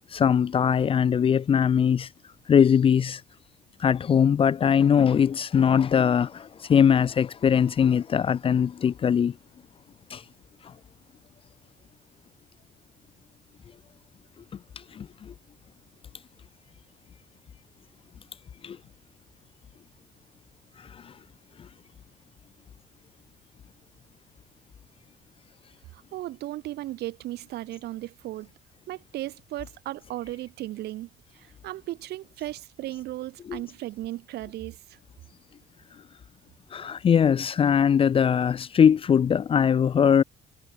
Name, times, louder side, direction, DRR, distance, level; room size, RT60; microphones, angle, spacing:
voice 1, 0.1-2.1 2.5-3.2 3.8-9.3 10.1-10.2 15.0-15.3 18.6-18.8 33.5-33.6 36.7-40.2, left 7 dB, 35° left, 0.5 m, -21 dB
voice 2, 25.9-28.5 28.9-31.1 31.3-34.8, right 15 dB, 75° right, 4.3 m, -36 dB
cardioid pair, 110°, 17 cm